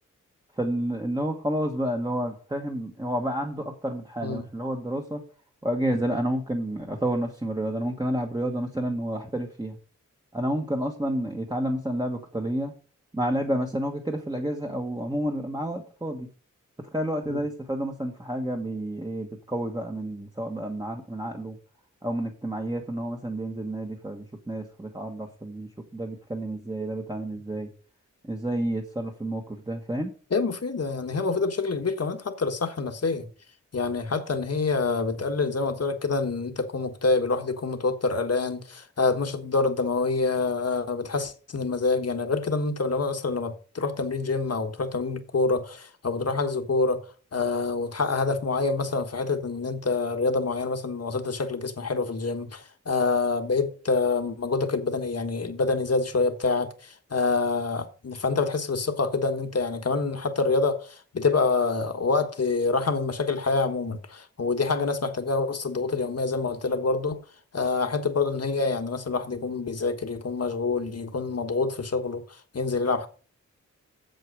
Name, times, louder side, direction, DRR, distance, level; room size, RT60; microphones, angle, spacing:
voice 1, 0.6-5.2 5.6-9.8 10.3-12.7 13.1-16.3 16.8-21.6 22.0-27.7 28.2-30.1, right 1 dB, 15° right, 1.4 m, -30 dB
voice 2, 30.3-33.3 33.7-67.2 67.5-73.1, left 4 dB, 55° left, 1.4 m, -26 dB
7.8 x 7.6 x 5.0 m
wide cardioid pair, 90°, 31 cm